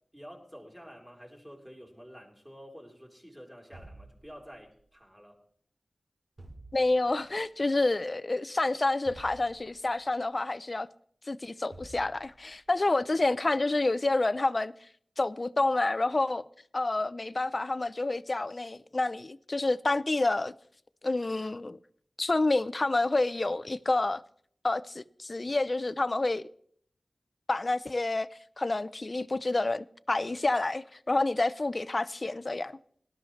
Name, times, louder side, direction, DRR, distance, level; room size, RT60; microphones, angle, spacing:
voice 1, 0.1-5.4, equal, 10° right, 3.5 m, -49 dB
sound 1, 3.7-4.9 6.4-7.3 9.1-10.1 11.7-12.7, right 2 dB, 50° right, 2.6 m, -51 dB
voice 2, 6.7-10.9 11.3-14.7 15.2-16.4 16.7-20.5 21.0-21.8 22.2-24.2 24.6-26.5 27.5-28.3 28.6-32.8, left 2 dB, 40° left, 0.5 m, -28 dB
18.5 x 12.5 x 3.2 m
wide cardioid pair, 65°, 0 cm